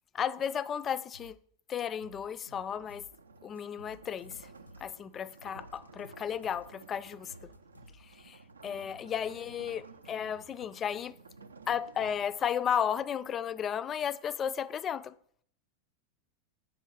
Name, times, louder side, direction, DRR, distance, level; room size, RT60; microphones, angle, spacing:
voice 1, 0.1-1.4 1.7-3.1 3.4-4.4 4.8-7.5 8.2-9.8 10.1-11.1 11.7-15.1, left 8 dB, 25° left, 0.3 m, -34 dB
sound 1, 1.1-1.4 1.8-3.2 3.6-4.9 5.3-6.7 7.1-8.3, equal, 80° left, 0.5 m, -55 dB
sound 2, 2.0-12.9, right 4 dB, 75° right, 0.5 m, -54 dB
8.8 x 4.5 x 5.1 m
figure-of-eight pair, 90°, 0 cm